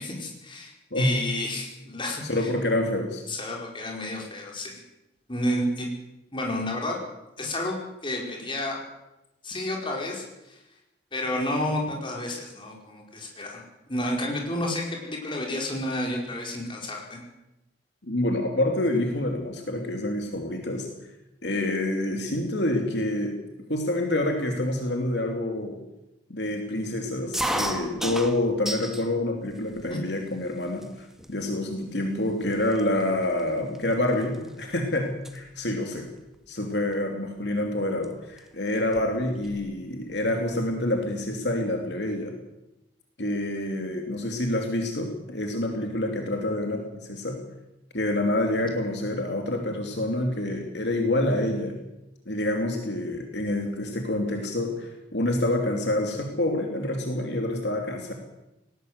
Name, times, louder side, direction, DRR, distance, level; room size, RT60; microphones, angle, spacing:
voice 1, 0.0-2.5 3.3-4.8 5.3-5.9 6.3-7.0 7.4-7.8 8.0-8.8 9.4-10.6 11.1-13.6 13.9-17.2 29.9-30.0, left 1 dB, 25° left, 0 dB, 5.0 m, -30 dB
voice 2, 2.3-3.2 18.0-20.9 21.4-23.3 23.7-25.8 26.3-36.1 36.5-42.3 43.2-47.4 47.9-51.8 52.3-58.1, left 1 dB, 70° left, 2 dB, 2.9 m, -27 dB
sound 1, 27.3-29.1 29.5-30.2 30.8-30.9 31.2-31.6 32.2-32.3 32.5-34.8 35.0-35.4 36.7-36.9 38.0-38.1 38.4-38.5 38.7-39.6, right 1 dB, ahead, 1.6 m, -33 dB
19.0 x 18.0 x 8.1 m, 0.94 s
head